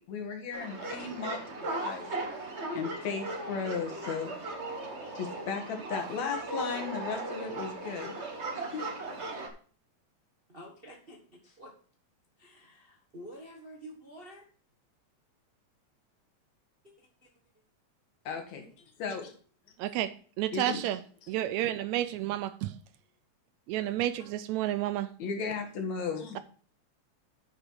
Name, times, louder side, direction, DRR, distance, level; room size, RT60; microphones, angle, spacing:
voice 1, 0.0-2.1 2.7-4.3 5.0-8.2 8.6-8.8 18.2-18.7 19.0-19.3 20.5-20.8 25.2-26.4, left 5 dB, 70° left, 2.8 m, -36 dB
sound 1, 0.5-9.5, right 2 dB, 65° right, 0.6 m, -37 dB
voice 2, 1.3-1.7 10.5-11.8 12.4-14.5 16.8-17.3 24.2-24.3, equal, 35° right, 0.9 m, -50 dB
voice 3, 19.8-21.0 21.3-22.8 23.7-25.1, right 13 dB, 80° right, 1.8 m, -31 dB
9.5 x 6.6 x 4.5 m
omnidirectional pair, 3.4 m